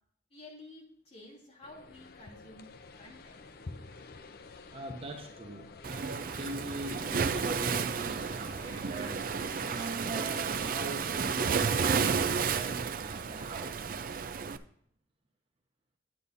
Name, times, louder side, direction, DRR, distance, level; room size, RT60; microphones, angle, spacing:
voice 1, 0.3-2.7 2.9-3.8, left 2 dB, 35° left, -3 dB, 2.8 m, -52 dB
sound 1, 1.6-10.0, left 3 dB, 55° left, 0.6 m, -50 dB
voice 2, 4.7-13.7, right 2 dB, 35° right, 3 dB, 1.1 m, -41 dB
Waves surf, 5.8-14.6, right 6 dB, 50° right, 0.5 m, -32 dB
10.0 x 9.1 x 2.6 m, 0.68 s
head